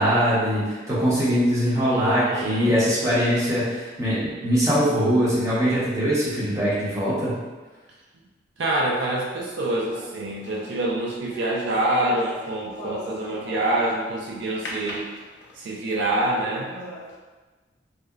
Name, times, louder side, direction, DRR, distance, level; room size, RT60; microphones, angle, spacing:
voice 1, 0.0-7.3, equal, 15° right, -10 dB, 0.7 m, -22 dB
voice 2, 1.9-2.8 8.6-15.0 15.6-16.7, right 1 dB, 80° right, -2 dB, 0.4 m, -26 dB
sound 1, 9.6-14.0 14.7-15.8 16.3-16.4 16.7-17.2, left 2 dB, 70° left, 0.4 m, -39 dB
2.7 x 2.0 x 2.3 m, 1.3 s
head